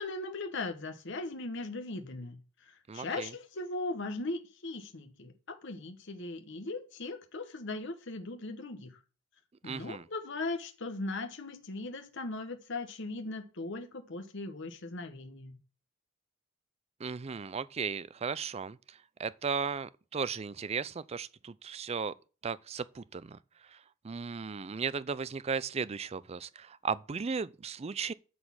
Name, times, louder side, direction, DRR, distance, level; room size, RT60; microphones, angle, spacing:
voice 1, 0.0-2.4 2.7-9.0 9.6-15.6, left 2 dB, 60° left, 1.1 m, -39 dB
voice 2, 2.9-3.3 9.6-10.0 17.0-18.8 19.2-22.1 22.4-23.4 24.0-28.1, right 5 dB, 30° right, 0.4 m, -36 dB
12.5 x 4.2 x 7.1 m
head